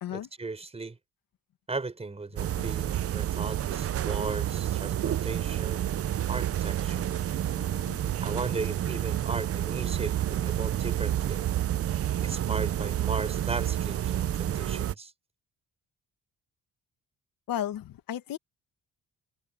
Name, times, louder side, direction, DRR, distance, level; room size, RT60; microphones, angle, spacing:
voice 1, 0.1-1.0 1.7-5.8 6.3-7.1 8.2-11.4 12.2-15.1, right 3 dB, 20° right, 5.8 m, -36 dB
sound 1, 2.4-14.9, right 11 dB, 45° right, 0.6 m, -29 dB
voice 2, 7.6-8.0 17.5-18.4, left 11 dB, 80° left, 1.9 m, -35 dB
cardioid pair, 155°, 34 cm